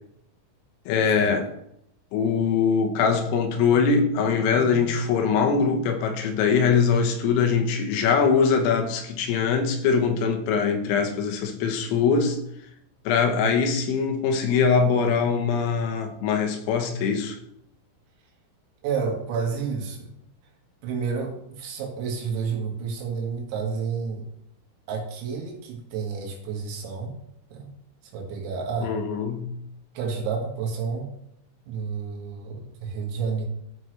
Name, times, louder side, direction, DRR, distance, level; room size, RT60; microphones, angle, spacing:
voice 1, 0.9-1.5 2.1-12.4 13.1-17.4 28.8-29.5, left 5 dB, 85° left, 3.7 m, -22 dB
voice 2, 18.8-20.1 20.8-24.3 24.9-27.1 27.5-27.7 28.0-28.9 30.0-31.1 31.7-33.5, right 5 dB, 85° right, 4.4 m, -30 dB
14.5 x 6.0 x 3.3 m
omnidirectional pair, 6.0 m